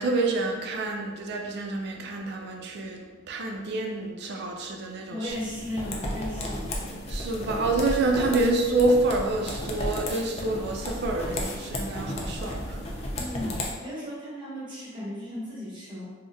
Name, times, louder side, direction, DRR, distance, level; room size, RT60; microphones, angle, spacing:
voice 1, 0.0-5.3 7.1-12.9, right 2 dB, 60° right, 2 dB, 0.4 m, -27 dB
voice 2, 5.1-6.8 13.2-16.1, left 1 dB, 25° right, -8 dB, 1.0 m, -36 dB
sound 1, 5.3-13.7, left 1 dB, 35° left, 0.4 m, -33 dB
2.4 x 2.1 x 3.9 m, 1.3 s
head